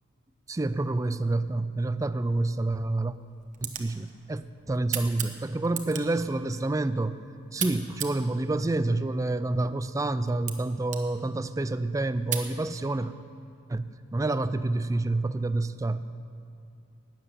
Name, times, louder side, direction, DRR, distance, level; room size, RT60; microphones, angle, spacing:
voice 1, 0.5-3.1 3.6-7.2 7.5-13.1 13.7-16.0, right 2 dB, 15° right, 13 dB, 0.3 m, -28 dB
sound 1, 2.4-12.5, right 9 dB, 35° right, 1.0 m, -40 dB
12.5 x 7.6 x 9.8 m, 2.4 s
head